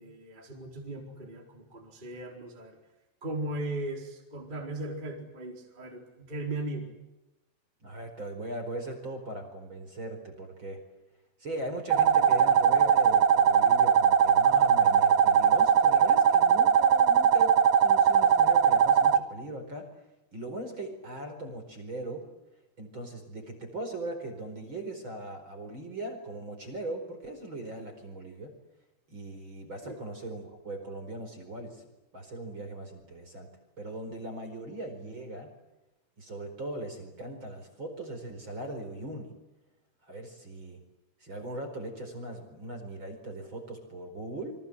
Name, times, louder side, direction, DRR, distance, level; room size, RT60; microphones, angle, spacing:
voice 1, 0.0-2.8 3.2-6.9 29.8-30.0, right 2 dB, 10° right, 1 dB, 3.9 m, -37 dB
voice 2, 7.8-10.8 11.4-19.9 20.3-22.3 22.8-28.6 29.1-31.8 32.1-33.5 33.8-35.5 36.2-39.3 40.0-40.8 41.2-44.6, right 1 dB, 25° right, 6 dB, 4.8 m, -39 dB
sound 1, 11.9-19.2, right 7 dB, 65° right, 2.4 m, -21 dB
29.0 x 25.0 x 8.0 m, 0.99 s
omnidirectional pair, 5.4 m